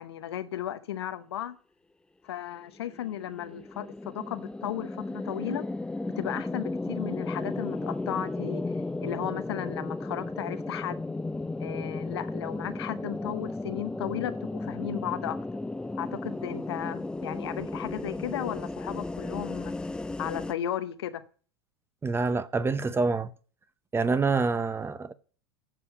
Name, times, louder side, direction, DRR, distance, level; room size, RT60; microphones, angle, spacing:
voice 1, 0.0-1.6 2.2-5.7 6.1-8.6 9.0-11.1 11.6-15.4 16.0-19.7 20.2-21.2, left 11 dB, 80° left, 0.8 m, -35 dB
sound 1, 2.8-20.5, left 2 dB, 5° left, 0.4 m, -34 dB
voice 2, 22.0-23.3 23.9-25.1, right 4 dB, 15° right, 0.7 m, -26 dB
7.6 x 6.9 x 6.5 m
hypercardioid pair, 85°, 14 cm